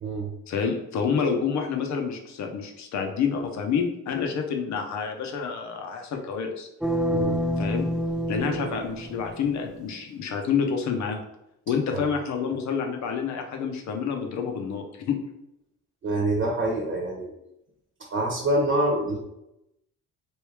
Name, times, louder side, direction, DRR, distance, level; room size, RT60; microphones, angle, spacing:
voice 1, 0.5-6.7 7.6-7.9 8.3-11.2 11.7-15.2, left 6 dB, 65° left, 4 dB, 0.7 m, -28 dB
sound 1, 6.8-9.8, equal, ahead, 0.3 m, -28 dB
voice 2, 16.0-17.3 18.1-19.2, right 1 dB, 40° right, -1 dB, 1.0 m, -26 dB
3.2 x 2.6 x 3.3 m, 0.84 s
cardioid pair, 90°, 30 cm